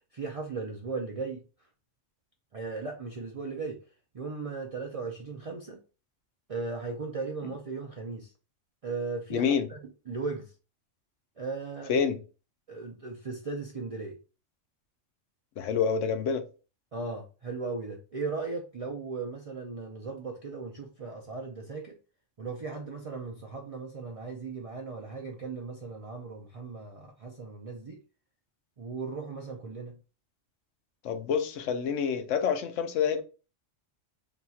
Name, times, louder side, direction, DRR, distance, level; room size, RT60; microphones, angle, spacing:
voice 1, 0.1-1.4 2.5-3.8 4.1-5.8 6.5-8.3 8.8-9.8 10.1-10.5 11.4-11.9 12.7-14.2 16.9-22.0 22.4-28.0 28.8-30.0, right 4 dB, 60° right, 0.3 m, -37 dB
voice 2, 9.3-9.7 11.9-12.2 15.6-16.4 31.0-33.2, left 7 dB, 80° left, 1.0 m, -27 dB
2.9 x 2.3 x 4.0 m
omnidirectional pair, 1.3 m